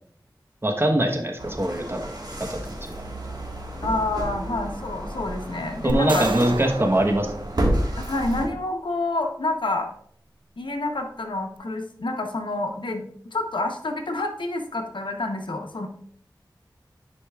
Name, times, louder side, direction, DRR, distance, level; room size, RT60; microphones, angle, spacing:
voice 1, 0.6-2.0 2.5-2.7 5.8-7.3, right 1 dB, 30° right, 3 dB, 1.1 m, -22 dB
sound 1, 1.4-8.5, right 1 dB, 55° right, 1.6 m, -31 dB
voice 2, 3.8-6.3 7.0-7.1 8.0-9.9 10.6-13.0 13.3-15.9, left 2 dB, 85° left, 4 dB, 0.9 m, -28 dB
sound 2, 5.9-8.3, right 4 dB, 90° right, 0.4 m, -33 dB
9.8 x 5.2 x 2.4 m, 0.63 s
wide cardioid pair, 50°, 8 cm